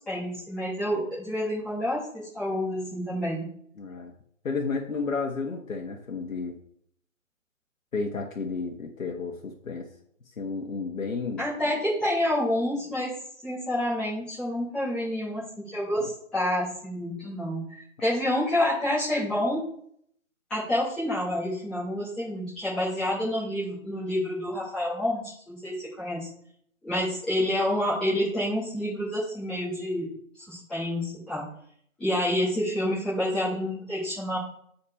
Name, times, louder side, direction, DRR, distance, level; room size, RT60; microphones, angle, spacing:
voice 1, 0.0-3.5 11.4-13.1 13.4-19.6 20.5-26.3 26.8-30.1 30.4-31.5 32.0-34.4, left 1 dB, ahead, -12 dB, 1.3 m, -28 dB
voice 2, 3.8-4.1 4.4-6.6 7.9-9.9 10.4-11.4, left 4 dB, 80° left, 1 dB, 1.4 m, -32 dB
8.6 x 4.3 x 4.1 m, 0.66 s
hypercardioid pair, 175°, 40 cm